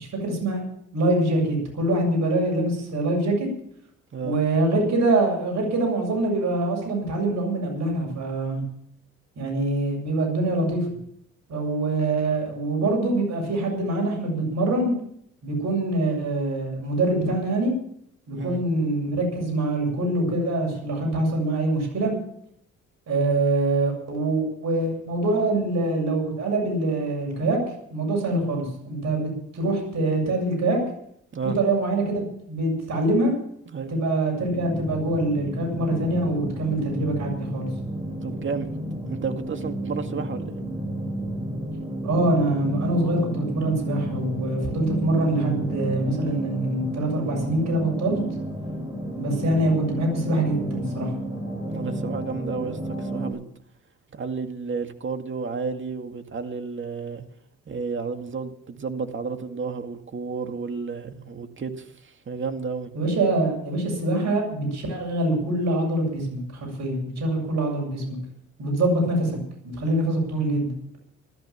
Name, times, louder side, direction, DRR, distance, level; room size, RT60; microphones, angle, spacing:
voice 1, 0.2-0.6 0.9-3.5 4.2-8.6 9.4-10.8 11.5-14.9 15.4-17.7 18.3-22.1 23.1-27.6 27.9-30.8 31.6-33.3 33.9-37.7 42.0-48.2 49.1-51.1 62.9-68.2 68.6-69.4 69.6-70.7, right 2 dB, 65° right, 0 dB, 7.5 m, -24 dB
sound 1, 34.4-53.3, right 1 dB, 15° right, 7.3 m, -31 dB
voice 2, 38.2-38.7 39.1-40.5 51.7-53.4 54.1-57.2 57.7-62.9, right 5 dB, 40° right, 6 dB, 2.1 m, -32 dB
15.0 x 13.0 x 7.2 m, 0.69 s
cardioid pair, 90°, 30 cm